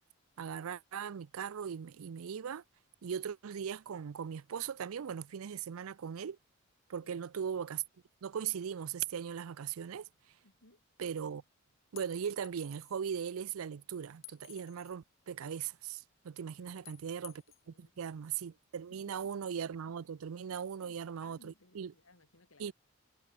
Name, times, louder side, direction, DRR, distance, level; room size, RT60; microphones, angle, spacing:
voice 1, 0.4-2.6 3.0-6.4 6.9-7.8 8.2-10.1 11.0-11.4 11.9-21.9 22.6-22.7, right 7 dB, 85° right, 0.4 m, -39 dB
voice 2, 10.4-10.8 16.6-16.9 17.6-18.2 18.9-19.3 20.6-22.7, left 2 dB, 80° left, 3.6 m, -64 dB
sound 1, 12.0-13.0 14.2-15.0 16.9-17.6, left 17 dB, 65° left, 2.0 m, -54 dB
head